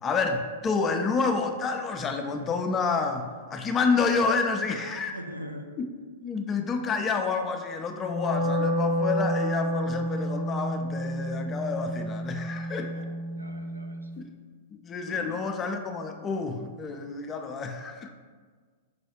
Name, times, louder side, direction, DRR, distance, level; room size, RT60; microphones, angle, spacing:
voice 1, 0.0-5.1 5.8-5.9 6.2-12.9 14.2-14.3 14.8-18.1, left 4 dB, 20° left, 5 dB, 0.3 m, -29 dB
voice 2, 5.1-5.7 12.9-13.1 13.3-14.1 15.0-15.4, equal, 90° right, 3 dB, 0.4 m, -41 dB
Wind instrument woodwind instrument, 7.9-14.1, equal, 75° right, 1.2 m, -30 dB
5.2 x 2.3 x 2.9 m, 1.5 s
figure-of-eight pair, 100°, 0 cm